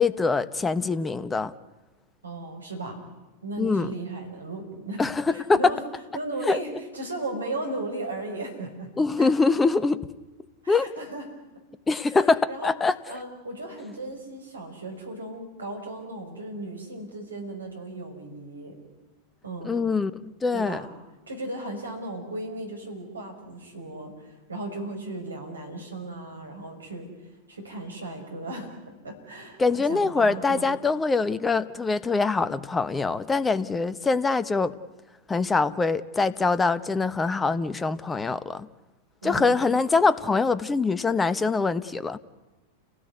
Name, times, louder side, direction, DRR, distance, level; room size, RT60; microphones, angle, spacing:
voice 1, 0.0-1.5 3.6-3.9 5.0-5.7 6.4-6.6 9.0-10.0 10.7-10.9 11.9-12.9 19.6-20.8 29.6-34.7 35.3-38.7 39.2-42.2, left 4 dB, 15° left, 16 dB, 1.1 m, -24 dB
voice 2, 2.2-3.0 3.4-5.0 5.3-5.8 6.1-8.9 9.2-9.3 10.6-11.3 12.5-12.7 13.1-18.8 19.4-19.9 20.5-20.9 21.3-27.1 27.5-30.8 39.2-39.7, right 2 dB, 75° right, 3 dB, 5.9 m, -36 dB
29.5 x 17.5 x 9.6 m, 1.1 s
figure-of-eight pair, 90°, 0 cm